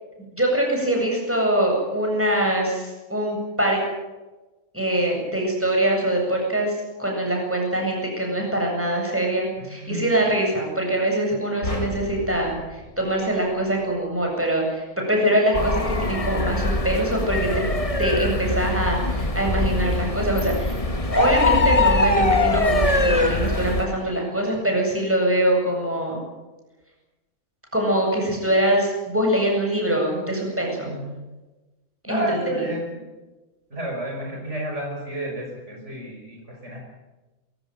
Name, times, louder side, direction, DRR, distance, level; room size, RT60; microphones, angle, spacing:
voice 1, 0.3-3.8 4.7-17.7 18.0-20.8 21.1-26.2 27.7-30.9 32.0-32.2 32.5-32.6, right 1 dB, 10° right, 0 dB, 7.9 m, -23 dB
voice 2, 9.6-10.3 13.2-13.5 30.8-31.2 32.1-33.0 33.7-36.8, right 1 dB, 55° right, 0 dB, 5.6 m, -31 dB
sound 1, 11.6-14.0, left 2 dB, 65° left, 4.5 m, -34 dB
sound 2, 15.5-23.9, left 2 dB, 25° left, 1.6 m, -22 dB
22.0 x 17.5 x 9.3 m, 1.1 s
omnidirectional pair, 1.4 m